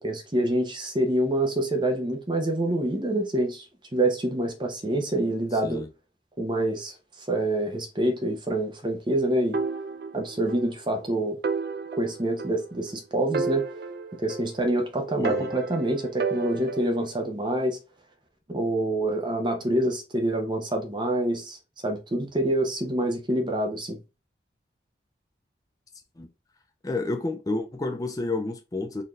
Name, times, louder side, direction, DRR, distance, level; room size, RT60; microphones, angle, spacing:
voice 1, 0.0-3.7 3.9-5.8 6.4-9.6 10.1-11.4 11.9-13.6 14.2-17.8 18.5-21.6 21.8-24.0, right 1 dB, 25° right, 0.7 m, -26 dB
sound 1, 9.5-10.7 11.0-11.1 11.4-13.0 13.3-14.8 15.2-17.1, right 4 dB, 55° right, 0.4 m, -32 dB
voice 2, 15.2-15.5 26.2-26.3 26.8-29.0, left 2 dB, 20° left, 0.4 m, -30 dB
4.0 x 2.6 x 3.1 m
head